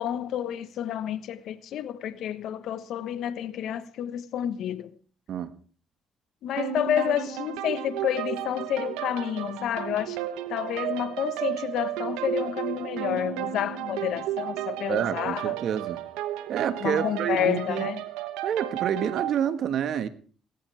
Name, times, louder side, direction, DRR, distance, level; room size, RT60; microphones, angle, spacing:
voice 1, 0.0-4.9 6.4-10.2 10.5-15.5 16.8-18.0, left 10 dB, 75° left, 1.2 m, -29 dB
sound 1, 6.6-19.4, right 13 dB, 85° right, 1.1 m, -33 dB
voice 2, 14.9-16.0 16.5-17.9 18.4-20.1, right 9 dB, 70° right, 1.5 m, -28 dB
18.5 x 17.0 x 3.4 m
hypercardioid pair, 50°, 0 cm